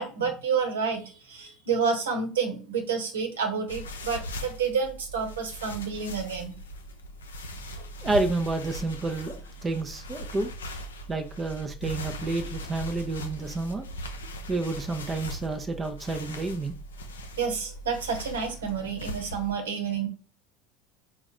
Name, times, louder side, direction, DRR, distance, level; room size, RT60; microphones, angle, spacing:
voice 1, 0.0-6.6 7.8-7.9 17.4-20.1, right 6 dB, 75° right, 4 dB, 1.2 m, -29 dB
sound 1, 3.7-19.5, equal, 80° left, 0.6 m, -39 dB
voice 2, 8.0-10.5 11.1-13.9 14.5-16.7, right 2 dB, 25° right, 4 dB, 0.7 m, -30 dB
4.8 x 2.4 x 4.2 m, 0.37 s
figure-of-eight pair, 70°, 0 cm